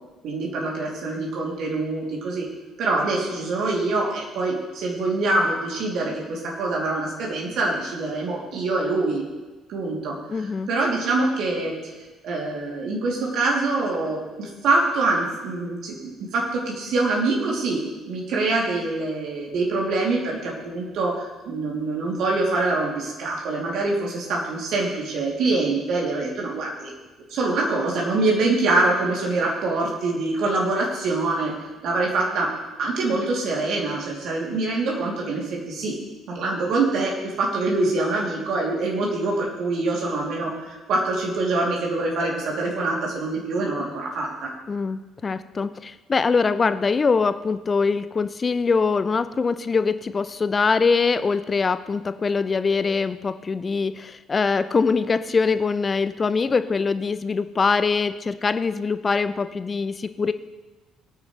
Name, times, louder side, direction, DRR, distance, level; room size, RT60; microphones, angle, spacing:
voice 1, 0.2-2.5 2.8-9.2 9.7-10.2 10.7-11.7 12.2-26.9 27.3-31.5 31.8-35.9 36.3-44.5, right 2 dB, 55° right, -2 dB, 3.1 m, -25 dB
voice 2, 10.3-10.7 44.7-60.3, left 4 dB, 30° left, 13 dB, 0.6 m, -23 dB
19.0 x 9.5 x 3.3 m, 1.2 s
figure-of-eight pair, 50°, 0 cm